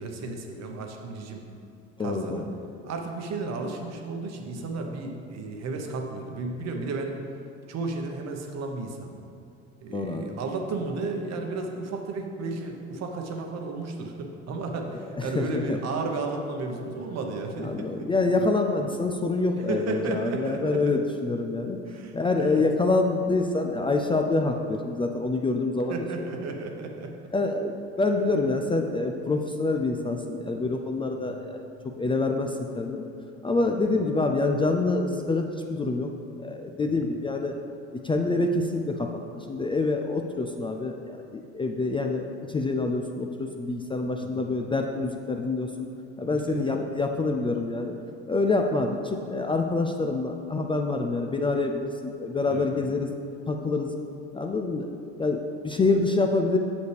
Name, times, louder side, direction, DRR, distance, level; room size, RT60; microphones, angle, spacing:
voice 1, 0.0-1.4 2.0-2.4 2.8-7.2 7.7-9.2 9.8-18.1 19.5-21.0 21.9-22.6 25.9-27.1 31.1-31.4 33.7-33.8 36.8-37.1 44.2-44.5 46.3-46.6 52.4-52.7, right 3 dB, 50° right, 3 dB, 1.0 m, -33 dB
voice 2, 2.0-2.4 9.9-10.3 15.2-15.8 17.6-21.8 22.1-26.0 27.3-33.1 33.4-36.1 36.4-37.5 37.9-45.9 46.2-47.9 48.3-53.1 53.5-53.9 54.3-54.9 55.2-56.6, left 3 dB, 15° left, 3 dB, 0.4 m, -26 dB
7.1 x 6.3 x 3.3 m, 2.5 s
supercardioid pair, 80°, 33 cm